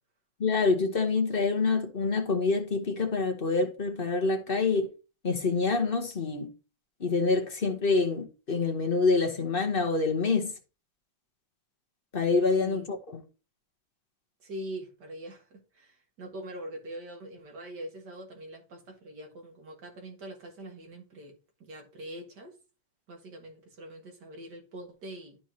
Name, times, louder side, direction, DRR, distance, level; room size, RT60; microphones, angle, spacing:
voice 1, 0.4-4.9 5.2-6.5 7.0-10.5 12.1-13.2, left 4 dB, 40° left, 1.0 m, -26 dB
voice 2, 14.4-21.3 21.6-22.6 23.1-25.4, right 1 dB, 60° right, 2.3 m, -43 dB
12.5 x 4.6 x 2.8 m
omnidirectional pair, 2.0 m